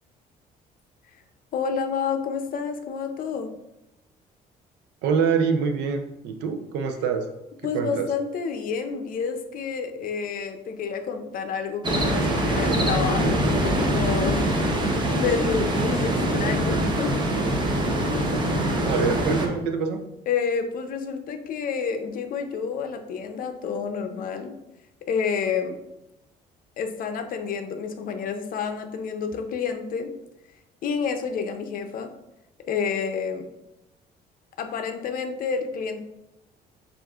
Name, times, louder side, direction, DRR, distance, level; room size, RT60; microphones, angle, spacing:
voice 1, 1.5-3.5 7.6-14.4 14.8-17.1 20.3-24.5 25.0-25.8 26.8-30.1 30.8-32.1 32.7-33.5 34.6-36.0, left 6 dB, 55° left, 6 dB, 0.6 m, -29 dB
voice 2, 5.0-7.3 7.7-8.1 18.9-20.0, right 6 dB, 90° right, 5 dB, 0.5 m, -25 dB
sound 1, 11.8-19.5, right 1 dB, 25° right, 0.8 m, -23 dB
7.0 x 2.5 x 2.4 m, 0.92 s
cardioid pair, 110°, 17 cm